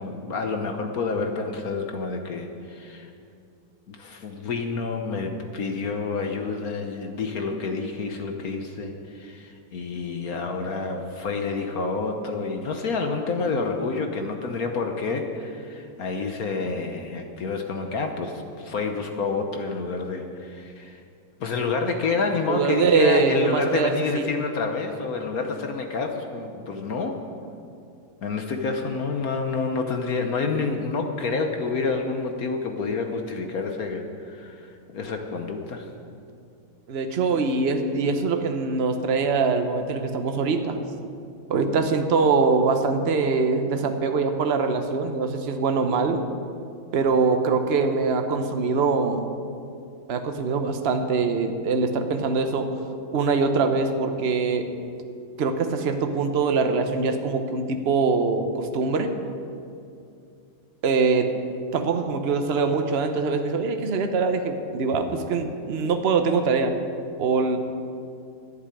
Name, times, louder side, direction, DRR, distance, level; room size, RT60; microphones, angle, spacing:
voice 1, 0.0-3.1 3.9-21.0 21.4-27.2 28.2-35.9, left 4 dB, 55° left, 4 dB, 1.1 m, -28 dB
voice 2, 22.5-24.2 36.9-40.8 41.5-46.2 46.9-49.3 50.1-52.7 53.1-54.7 55.4-59.1 60.8-61.3 61.7-66.7 67.2-67.6, right 4 dB, 70° right, 6 dB, 0.6 m, -23 dB
11.5 x 7.4 x 9.7 m, 2.5 s
omnidirectional pair, 2.2 m